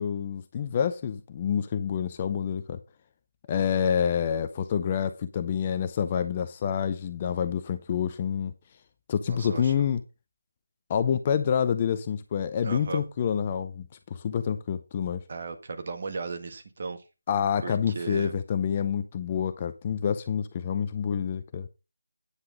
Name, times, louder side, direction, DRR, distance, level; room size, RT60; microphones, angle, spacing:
voice 1, 0.0-2.8 3.5-8.5 9.1-10.0 10.9-15.2 17.3-21.7, left 8 dB, 20° left, 0.6 m, -27 dB
voice 2, 9.3-9.9 12.6-13.0 15.3-17.0 17.6-18.3, right 4 dB, 35° right, 1.7 m, -36 dB
9.8 x 7.7 x 3.9 m
figure-of-eight pair, 160°, 0 cm